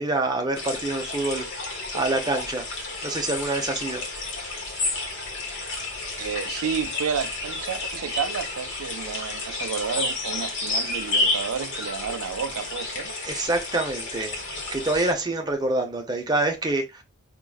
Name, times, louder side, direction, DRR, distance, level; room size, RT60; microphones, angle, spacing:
voice 1, 0.0-1.4 1.9-2.6 3.0-4.0 13.2-14.4 14.7-17.0, right 2 dB, 20° right, 0.6 m, -26 dB
sound 1, 0.5-15.1, left 2 dB, 55° left, 1.2 m, -31 dB
voice 2, 6.2-13.1, right 7 dB, 70° right, 0.4 m, -31 dB
4.6 x 2.4 x 2.2 m
head